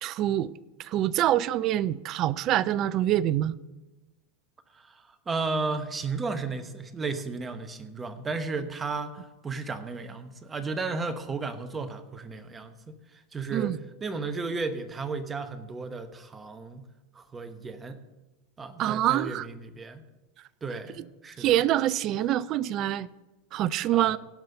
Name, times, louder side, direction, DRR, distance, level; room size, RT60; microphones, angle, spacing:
voice 1, 0.0-0.5 0.8-3.6 13.5-13.8 18.8-19.5 21.4-23.1 23.5-24.2, right 12 dB, 45° right, 0.4 m, -25 dB
voice 2, 4.7-13.8 14.0-16.9 17.1-18.0 18.6-20.0 20.6-21.6 23.9-24.2, right 4 dB, 20° right, 1.1 m, -34 dB
17.0 x 5.6 x 5.4 m
hypercardioid pair, 95°, 0 cm